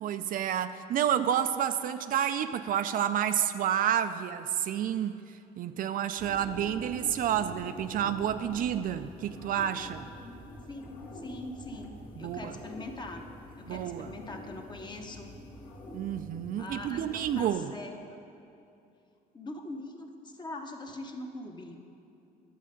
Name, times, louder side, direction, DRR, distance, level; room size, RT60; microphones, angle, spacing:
voice 1, 0.0-5.2 5.6-10.1 12.2-12.6 13.7-14.1 15.9-17.7, right 10 dB, 55° right, 10 dB, 0.4 m, -30 dB
sound 1, 6.2-17.5, left 1 dB, 60° left, 1.6 m, -46 dB
voice 2, 10.7-13.3 13.6-15.4 16.6-18.2 19.3-21.8, left 2 dB, 25° left, 3 dB, 1.0 m, -42 dB
11.0 x 7.4 x 5.1 m, 2.7 s
cardioid pair, 110°, 17 cm